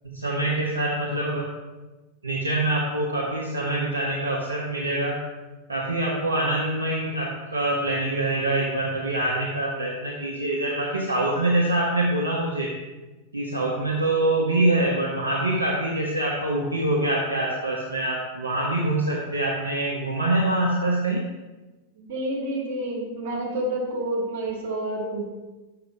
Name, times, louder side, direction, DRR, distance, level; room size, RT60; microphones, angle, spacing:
voice 1, 0.0-1.5 2.2-5.2 5.7-12.7 13.3-21.3, right 2 dB, 75° right, -2 dB, 0.9 m, -25 dB
voice 2, 22.0-25.2, right 1 dB, 50° right, -2 dB, 2.4 m, -29 dB
6.8 x 5.8 x 4.6 m, 1.2 s
figure-of-eight pair, 90°, 0 cm